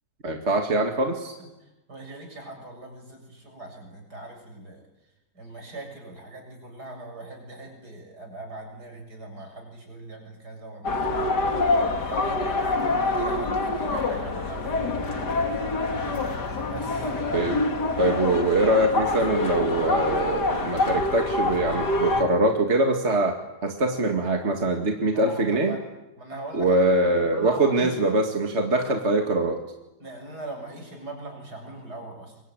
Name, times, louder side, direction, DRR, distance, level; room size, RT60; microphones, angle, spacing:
voice 1, 0.2-1.3 17.3-17.6 18.0-23.3 23.6-25.7 26.5-29.6, right 2 dB, 40° right, 3 dB, 2.4 m, -23 dB
voice 2, 1.9-4.8 5.3-11.3 12.0-15.4 16.7-17.2 25.1-25.8 26.2-28.2 30.0-32.4, right 2 dB, 70° right, 3 dB, 7.7 m, -41 dB
sound 1, 10.8-22.2, left 2 dB, 80° left, 3.2 m, -26 dB
27.5 x 23.0 x 9.2 m, 0.97 s
omnidirectional pair, 1.8 m